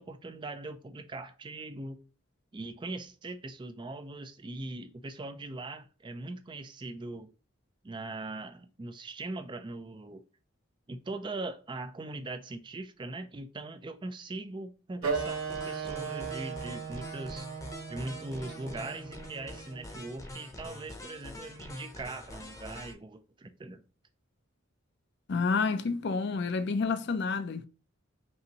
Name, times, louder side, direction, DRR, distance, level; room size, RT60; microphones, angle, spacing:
voice 1, 0.0-2.0 2.5-7.3 7.8-10.2 10.9-17.5 17.9-23.8, right 2 dB, 20° right, 0.3 m, -41 dB
Wind instrument woodwind instrument, 15.0-20.1, right 5 dB, 85° right, 1.4 m, -37 dB
sound 1, 15.1-22.9, left 1 dB, 15° left, 0.7 m, -45 dB
voice 2, 25.3-27.7, left 4 dB, 50° left, 0.4 m, -29 dB
5.3 x 2.6 x 2.9 m
head